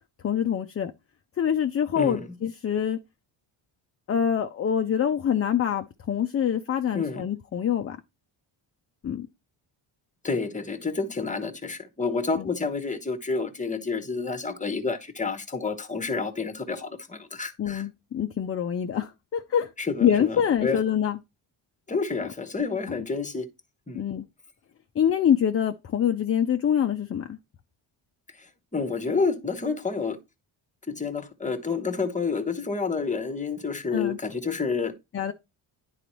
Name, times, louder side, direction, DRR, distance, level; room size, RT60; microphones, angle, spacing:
voice 1, 0.2-0.9 1.4-3.0 4.1-8.0 9.0-9.3 12.3-12.5 17.6-19.7 20.0-21.2 23.9-24.3 25.0-27.4 33.9-34.2 35.1-35.3, left 9 dB, 30° left, 0.4 m, -25 dB
voice 2, 1.9-2.3 6.9-7.3 10.2-17.9 19.8-20.8 21.9-23.5 23.9-24.1 28.4-30.2 30.9-35.0, left 4 dB, 15° left, 0.9 m, -29 dB
9.8 x 4.0 x 3.0 m
cardioid pair, 85°, 48 cm